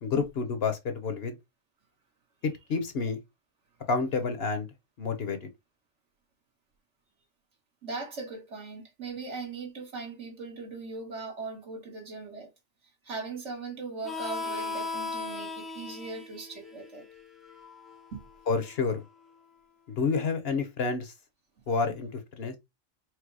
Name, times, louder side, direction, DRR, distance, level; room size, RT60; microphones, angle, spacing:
voice 1, 0.0-1.3 2.4-3.2 3.9-4.7 5.0-5.5 18.5-19.0 20.0-21.1 21.7-22.5, left 4 dB, 55° left, 1.0 m, -29 dB
voice 2, 7.8-12.5 13.0-17.1 18.1-18.2, right 3 dB, 65° right, 1.8 m, -39 dB
Harmonica, 14.0-19.3, left 4 dB, ahead, 0.7 m, -38 dB
4.6 x 2.2 x 4.6 m
omnidirectional pair, 1.3 m